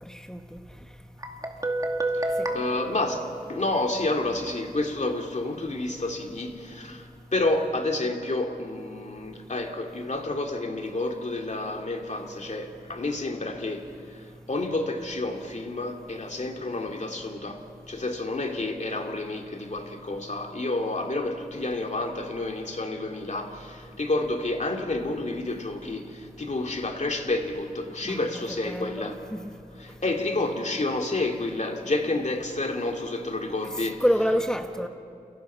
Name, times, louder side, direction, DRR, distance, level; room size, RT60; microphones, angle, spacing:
voice 1, 0.1-0.6 2.4-2.6 28.0-28.3 28.7-29.5 33.8-34.9, equal, 5° left, 5 dB, 1.7 m, -28 dB
Guitar, 1.2-4.0, right 1 dB, 20° right, 2.3 m, -30 dB
voice 2, 2.1-17.6 17.9-29.3 29.8-34.0, left 2 dB, 50° left, 3 dB, 2.5 m, -30 dB
29.5 x 29.5 x 5.7 m, 2.4 s
wide cardioid pair, 90°, 16 cm